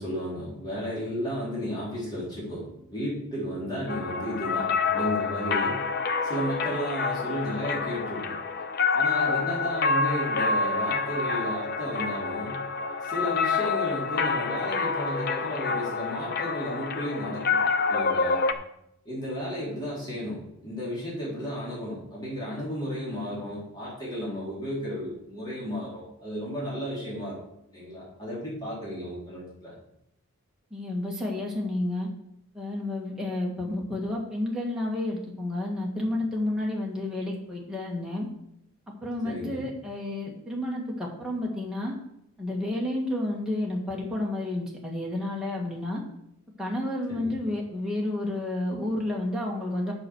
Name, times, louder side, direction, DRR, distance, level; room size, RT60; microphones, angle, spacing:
voice 1, 0.0-5.8 6.2-8.3 8.9-12.6 13.0-17.6 17.9-18.5 19.1-27.4 27.7-29.7 39.2-39.6 47.1-47.4, equal, 20° left, -8 dB, 3.8 m, -33 dB
sound 1, 3.9-18.5, left 4 dB, 45° left, 0.6 m, -27 dB
voice 2, 30.7-32.1 32.5-38.3 39.0-41.9 42.4-46.0 46.6-49.9, left 1 dB, 5° right, -4 dB, 2.0 m, -30 dB
8.5 x 6.3 x 6.4 m, 0.76 s
head